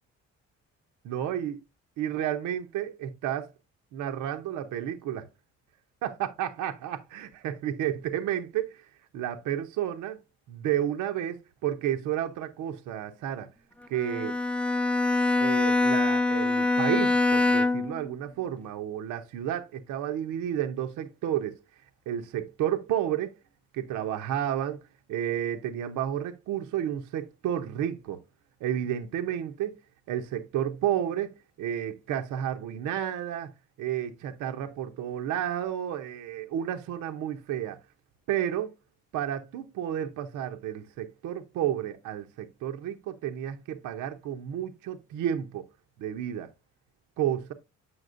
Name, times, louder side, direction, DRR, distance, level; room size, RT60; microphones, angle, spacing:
voice 1, 1.0-1.6 2.0-3.5 3.9-5.3 6.0-10.2 10.5-13.5 13.9-14.4 15.4-21.6 22.1-23.3 23.7-24.8 25.1-28.2 28.6-29.7 30.1-33.5 33.8-37.8 38.3-38.7 39.1-45.6 46.0-46.5 47.2-47.5, right 10 dB, 90° right, 0.7 m, -31 dB
Bowed string instrument, 14.0-18.0, left 2 dB, 5° left, 0.5 m, -24 dB
7.8 x 5.8 x 2.5 m
cardioid pair, 90°, 30 cm